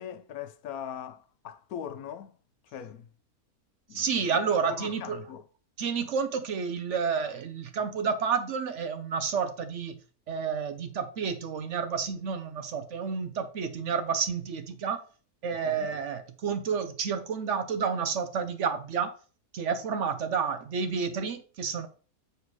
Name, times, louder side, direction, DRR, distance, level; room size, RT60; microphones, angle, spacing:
voice 1, 0.0-2.3 2.7-3.1 3.9-4.0 4.7-5.4 15.6-15.9, left 9 dB, 75° left, 1.1 m, -40 dB
voice 2, 3.9-5.2 5.8-10.0 10.3-15.0 15.4-19.1 19.5-21.9, right 6 dB, 60° right, 0.9 m, -30 dB
7.0 x 4.5 x 4.7 m
omnidirectional pair, 1.6 m